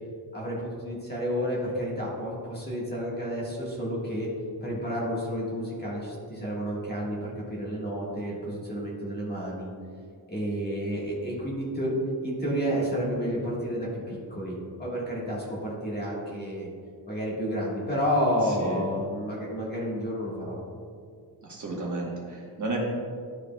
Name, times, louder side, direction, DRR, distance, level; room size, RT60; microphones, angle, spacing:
voice 1, 0.3-4.3 4.6-9.7 10.3-16.7 17.1-20.6, equal, 20° left, -5 dB, 1.5 m, -30 dB
voice 2, 21.4-22.8, right 2 dB, 40° right, -3 dB, 1.2 m, -33 dB
11.5 x 4.8 x 2.2 m, 2.2 s
wide cardioid pair, 175°, 45 cm